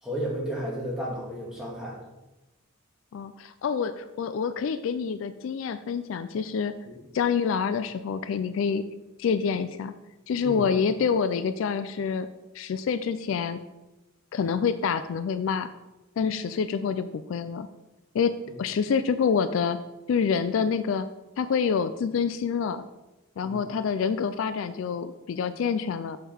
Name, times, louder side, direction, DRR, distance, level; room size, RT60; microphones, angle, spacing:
voice 1, 0.0-2.0 6.9-7.0 10.4-10.7 23.4-23.7, equal, 5° right, -5 dB, 1.8 m, -33 dB
voice 2, 3.1-6.7 7.1-8.8 9.2-9.9 10.3-12.3 12.5-13.6 14.3-15.7 16.2-17.7 18.1-18.3 18.6-19.8 20.1-21.1 21.4-22.8 23.4-26.2, left 6 dB, 65° left, 11 dB, 0.3 m, -27 dB
6.4 x 5.7 x 3.4 m, 1.0 s
head